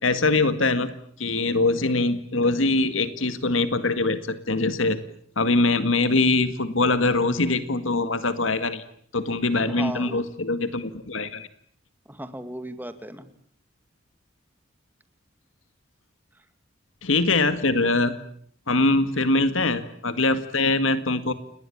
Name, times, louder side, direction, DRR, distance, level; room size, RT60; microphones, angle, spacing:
voice 1, 0.0-0.9 1.2-5.0 5.4-8.8 9.1-11.5 17.0-18.1 18.7-21.3, left 2 dB, 80° left, 11 dB, 2.0 m, -23 dB
voice 2, 9.7-10.2 12.1-13.3 16.3-16.5 19.1-19.4, right 1 dB, 10° right, 10 dB, 2.3 m, -37 dB
30.0 x 20.5 x 8.8 m, 0.62 s
head